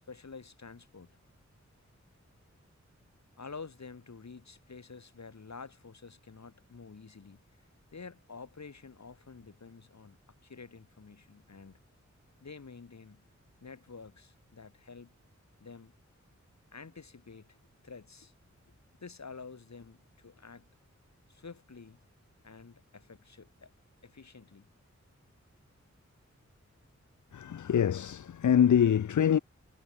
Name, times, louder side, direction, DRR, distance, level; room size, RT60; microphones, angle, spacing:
voice 1, 0.1-1.2 3.4-7.4 7.9-11.8 12.4-13.2 13.6-15.1 15.6-15.9 16.7-18.3 19.0-20.7 21.3-22.0 22.4-23.7 24.0-24.7, left 4 dB, 70° left, 3.7 m, -49 dB
voice 2, 27.3-29.4, left 9 dB, 85° left, 0.6 m, -25 dB
wide cardioid pair, 80°, 29 cm